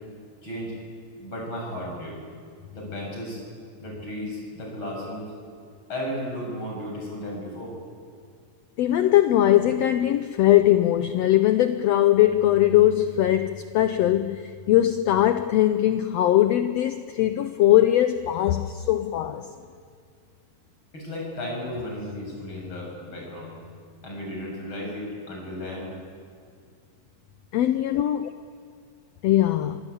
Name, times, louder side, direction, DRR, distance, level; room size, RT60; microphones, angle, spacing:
voice 1, 0.4-0.7 1.2-2.2 2.7-3.4 3.8-5.2 5.9-7.7 20.9-23.5 24.0-25.9, left 1 dB, 35° left, 7.8 m, -34 dB
voice 2, 8.8-19.5 27.5-28.3 29.2-29.8, left 13 dB, 85° left, 1.4 m, -20 dB
25.5 x 17.0 x 8.6 m
omnidirectional pair, 3.9 m